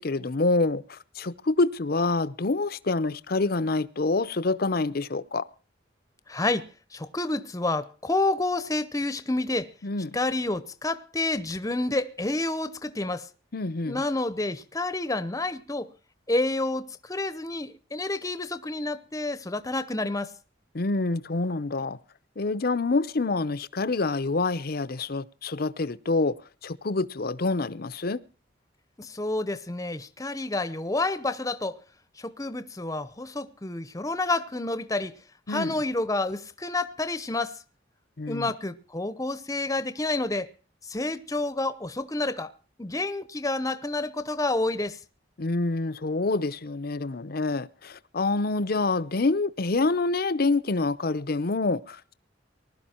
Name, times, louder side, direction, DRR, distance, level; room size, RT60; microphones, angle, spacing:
voice 1, 0.0-5.5 9.8-10.2 13.5-14.0 20.7-22.0 22.4-26.3 26.6-28.2 35.5-35.7 38.2-38.5 45.4-52.1, left 3 dB, 55° left, 0.7 m, -27 dB
voice 2, 6.3-9.7 10.1-13.3 13.9-15.9 16.3-20.3 29.0-31.8 32.2-35.1 35.5-37.6 38.3-40.5 40.9-42.5 42.8-45.0, left 2 dB, 20° left, 0.8 m, -29 dB
20.0 x 12.0 x 4.4 m
head